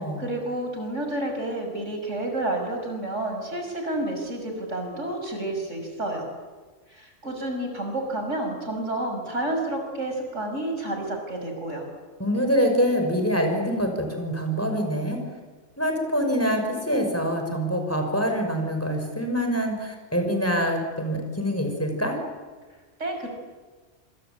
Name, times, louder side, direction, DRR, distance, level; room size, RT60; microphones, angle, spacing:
voice 1, 0.2-6.3 6.9-11.9 23.0-23.3, right 1 dB, 80° right, 3 dB, 6.5 m, -30 dB
voice 2, 12.2-15.2 15.8-22.2, equal, 10° left, 4 dB, 5.8 m, -25 dB
26.5 x 26.0 x 8.7 m, 1.3 s
omnidirectional pair, 1.2 m